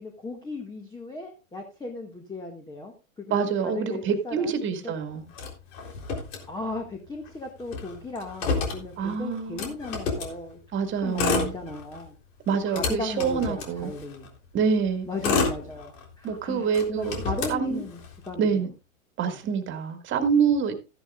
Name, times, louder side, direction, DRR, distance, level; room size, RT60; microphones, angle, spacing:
voice 1, 0.0-3.3 3.6-4.9 6.5-10.6 11.0-12.2 12.6-14.3 15.1-18.0 18.3-18.6 19.3-19.4, left 2 dB, 10° left, 1.9 m, -36 dB
voice 2, 3.3-5.3 9.0-9.7 10.7-11.5 12.5-13.9 14.5-15.1 16.2-17.2 17.5-17.8 18.4-18.7 19.2-20.8, right 6 dB, 30° right, 2.1 m, -26 dB
Motor vehicle (road), 5.3-7.0 7.3-7.4 7.6-10.4 11.0-12.1 12.5-14.3 14.9-16.3 16.7-18.3, left 4 dB, 65° left, 3.8 m, -30 dB
14.0 x 11.0 x 2.5 m
hypercardioid pair, 120°, 41 cm